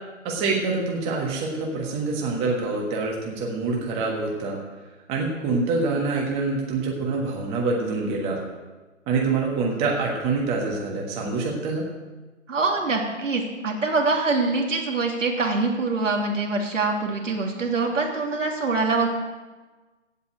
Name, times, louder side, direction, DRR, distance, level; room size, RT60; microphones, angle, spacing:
voice 1, 0.2-4.6 5.1-8.4 9.1-11.8, right 3 dB, 15° right, -1 dB, 1.4 m, -26 dB
voice 2, 12.5-19.1, right 3 dB, 75° right, 1 dB, 3.0 m, -24 dB
15.5 x 5.6 x 8.0 m, 1.3 s
hypercardioid pair, 145°, 38 cm